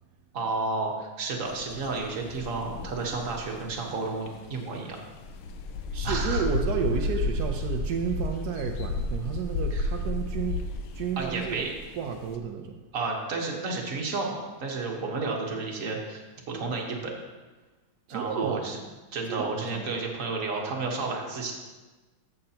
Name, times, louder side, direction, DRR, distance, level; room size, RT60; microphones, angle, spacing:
voice 1, 0.3-5.0 6.0-6.5 9.7-9.9 11.2-11.7 12.9-17.1 18.1-18.8 19.1-21.5, right 3 dB, 45° right, 0 dB, 1.4 m, -31 dB
sound 1, 1.5-12.4, left 3 dB, 80° left, 1.5 m, -33 dB
voice 2, 5.9-10.6 10.9-12.8 18.1-18.7 19.3-19.9, right 7 dB, 75° right, 4 dB, 0.9 m, -32 dB
14.0 x 6.7 x 2.9 m, 1.2 s
omnidirectional pair, 2.3 m